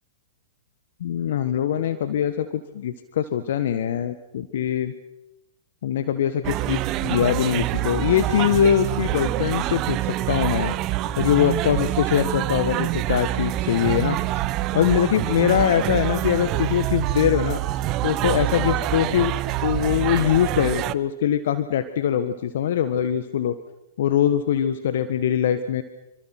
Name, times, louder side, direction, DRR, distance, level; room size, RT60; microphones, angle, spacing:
voice 1, 1.0-4.9 5.8-10.7 11.2-14.2 14.7-17.6 18.0-19.3 19.6-23.6 24.0-25.8, left 9 dB, 65° left, 11 dB, 1.6 m, -22 dB
sound 1, 6.4-20.9, right 15 dB, 35° right, 1.0 m, -26 dB
28.0 x 25.5 x 6.1 m, 0.90 s
hypercardioid pair, 110°, 0 cm